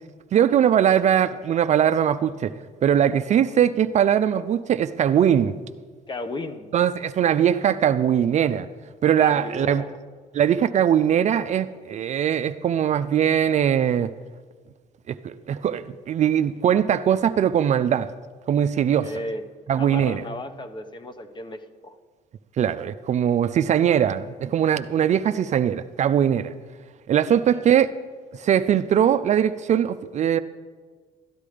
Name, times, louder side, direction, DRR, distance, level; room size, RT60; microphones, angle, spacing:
voice 1, 0.3-2.5 2.8-5.6 6.7-8.7 9.0-9.8 10.3-14.1 15.1-18.1 18.5-19.1 19.7-20.2 22.6-26.5 27.1-27.9 28.4-30.4, right 9 dB, 45° right, 11 dB, 0.4 m, -21 dB
voice 2, 6.1-6.7 9.2-10.0 19.0-19.4 19.8-22.0 27.2-27.6, left 2 dB, 25° left, 8 dB, 0.9 m, -35 dB
13.0 x 10.5 x 5.0 m, 1.5 s
cardioid pair, 110°, 17 cm